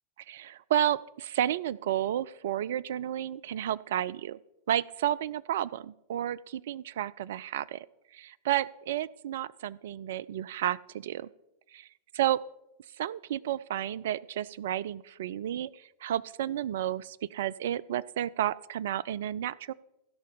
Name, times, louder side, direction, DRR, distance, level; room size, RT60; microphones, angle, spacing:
voice 1, 0.3-4.4 4.7-7.9 8.1-11.3 11.7-11.9 12.1-12.4 13.0-19.7, right 11 dB, 55° right, 21 dB, 0.3 m, -31 dB
16.0 x 5.4 x 5.4 m, 0.90 s
figure-of-eight pair, 90°, 0 cm